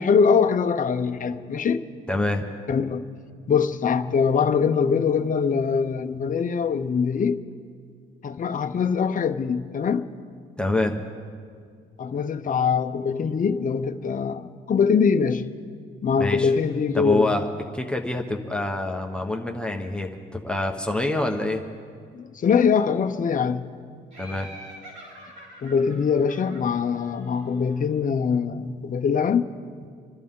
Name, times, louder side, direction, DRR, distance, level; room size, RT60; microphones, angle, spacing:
voice 1, 0.0-1.8 2.7-3.0 3.5-7.4 8.2-10.1 12.0-15.4 16.0-17.3 22.1-23.7 25.6-29.5, left 6 dB, 40° left, 0.8 m, -23 dB
voice 2, 2.1-2.4 10.6-11.1 16.2-16.5 16.9-17.4 17.7-21.6 24.2-24.5, left 2 dB, 5° left, 1.2 m, -26 dB
Laughter, 24.1-27.7, right 1 dB, 75° right, 5.0 m, -45 dB
27.5 x 12.0 x 3.8 m
cardioid pair, 90°, 20 cm